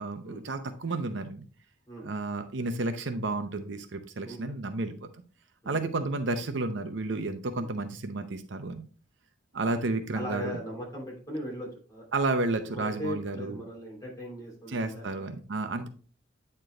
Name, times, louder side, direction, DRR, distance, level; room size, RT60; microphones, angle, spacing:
voice 1, 0.0-1.4 2.0-5.1 5.7-8.8 9.5-10.6 12.1-13.6 14.7-15.9, right 2 dB, 65° right, 8 dB, 0.7 m, -31 dB
voice 2, 10.1-12.0 12.7-15.3, equal, 20° left, -2 dB, 2.9 m, -39 dB
9.0 x 4.5 x 3.2 m, 0.39 s
head